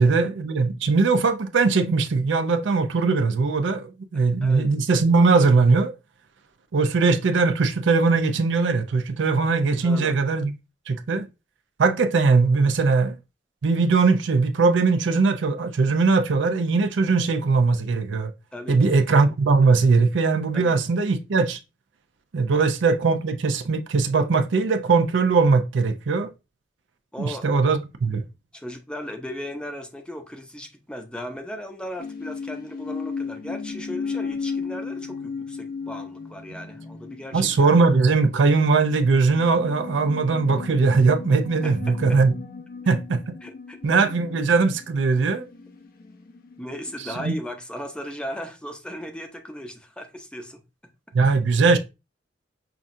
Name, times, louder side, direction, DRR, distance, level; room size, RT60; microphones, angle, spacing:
voice 1, 0.0-5.9 6.7-10.5 10.9-11.3 11.8-13.2 13.6-18.3 18.7-21.6 22.3-26.3 27.2-28.2 37.3-42.3 42.9-43.2 43.8-45.5 47.2-47.3 51.1-51.8, right 4 dB, 80° right, 0.5 m, -20 dB
voice 2, 4.4-4.7 9.8-10.1 18.5-18.8 20.5-20.7 27.1-27.4 28.5-37.7 41.6-41.9 43.4-43.8 46.6-50.6, equal, 5° left, 0.6 m, -36 dB
sound 1, 32.0-47.3, left 5 dB, 55° left, 0.6 m, -36 dB
5.8 x 2.4 x 2.5 m
head